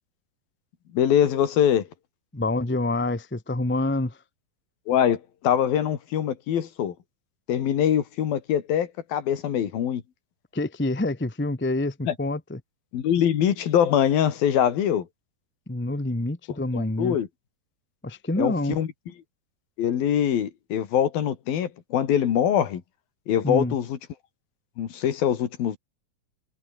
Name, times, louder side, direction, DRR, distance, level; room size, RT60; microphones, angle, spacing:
voice 1, 0.9-1.9 4.9-6.9 7.5-10.0 12.1-12.2 12.9-15.1 16.7-17.3 18.4-18.9 19.8-22.8 23.3-24.0 24.8-25.8, left 9 dB, 85° left, 4.1 m, -23 dB
voice 2, 2.3-4.2 10.5-12.6 15.7-17.2 18.0-18.8 23.4-23.7, left 2 dB, 15° left, 0.4 m, -27 dB
omnidirectional pair, 4.1 m